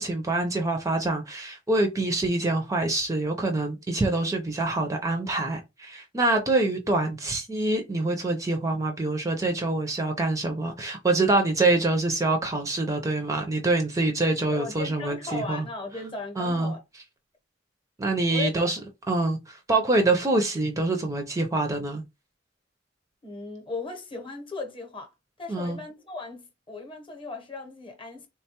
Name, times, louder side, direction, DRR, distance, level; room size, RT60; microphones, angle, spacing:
voice 1, 0.0-15.7 16.4-16.7 18.0-18.8 19.1-22.0 25.5-25.8, right 2 dB, 15° right, 0.4 m, -25 dB
voice 2, 14.5-16.8 18.3-18.7 23.2-25.1 25.4-28.3, left 3 dB, 25° left, 0.8 m, -37 dB
3.5 x 2.2 x 2.8 m
head